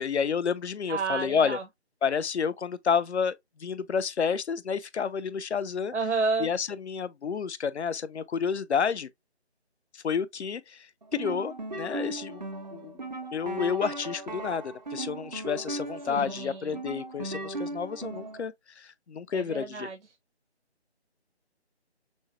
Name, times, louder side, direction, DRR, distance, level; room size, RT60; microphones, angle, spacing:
voice 1, 0.0-1.6 2.0-5.9 6.4-9.1 9.9-10.9 11.1-12.4 12.7-12.9 13.3-19.9, left 6 dB, 75° left, 0.6 m, -30 dB
voice 2, 0.9-1.6 5.9-6.5 16.0-16.8 19.3-20.0, right 4 dB, 90° right, 0.8 m, -31 dB
sound 1, 11.0-18.5, right 2 dB, 40° right, 0.5 m, -37 dB
6.2 x 2.1 x 2.5 m
figure-of-eight pair, 160°, 34 cm